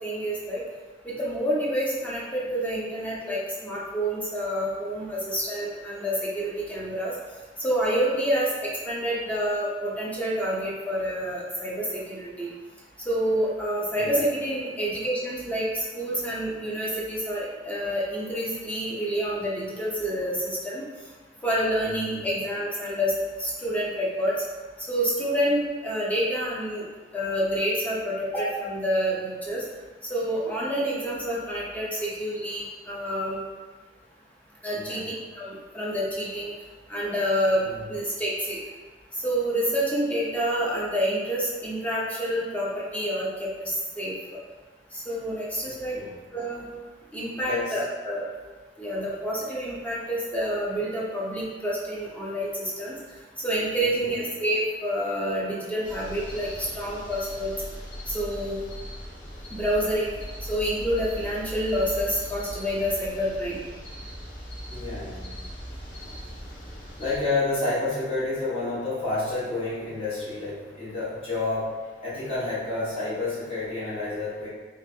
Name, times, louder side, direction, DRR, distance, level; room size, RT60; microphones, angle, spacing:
voice 1, 0.0-0.6 1.0-7.1 7.6-12.5 13.1-20.8 21.4-23.1 23.4-24.3 24.9-26.8 27.1-29.6 30.1-33.4 34.6-36.5 36.9-37.6 37.9-38.6 39.2-44.1 44.9-46.0 46.3-46.7 47.1-48.2 48.8-52.9 53.4-56.5 56.8-57.5 58.1-58.6 59.5-60.1 60.5-63.6, equal, 10° left, -6 dB, 0.7 m, -28 dB
voice 2, 21.8-22.2 34.7-35.1 37.6-37.8 45.6-46.1 47.3-47.8 54.0-54.1 64.7-65.3 67.0-74.5, left 2 dB, 35° left, -11 dB, 1.2 m, -30 dB
sound 1, 55.8-67.2, equal, 50° left, 0.7 m, -39 dB
3.2 x 2.5 x 3.3 m, 1.3 s
head